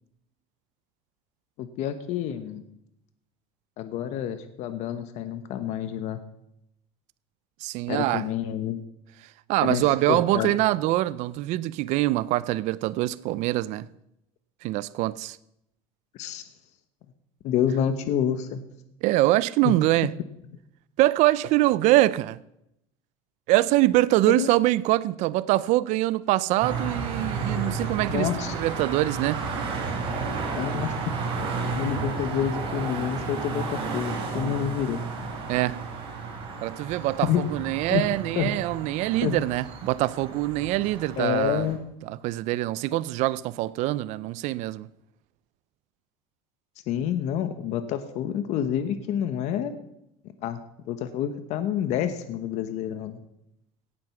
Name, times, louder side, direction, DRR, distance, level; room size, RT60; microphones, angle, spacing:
voice 1, 1.6-2.6 3.8-6.2 7.9-8.8 9.6-10.6 16.1-16.4 17.4-18.6 19.6-19.7 24.3-24.5 28.1-28.5 30.5-31.1 31.7-35.0 37.2-37.4 37.9-38.0 38.4-38.5 39.2-39.4 41.2-41.8 46.9-49.8 50.4-50.6 50.9-53.2, left 9 dB, 60° left, 1.1 m, -28 dB
voice 2, 7.6-8.2 9.5-13.9 14.6-15.4 19.0-20.1 21.0-22.4 23.5-29.4 35.5-35.8 36.6-41.7 42.0-44.9, right 17 dB, 60° right, 0.5 m, -24 dB
sound 1, 26.6-41.7, right 4 dB, 40° right, 4.4 m, -32 dB
17.5 x 7.6 x 5.9 m
cardioid pair, 140°, 14 cm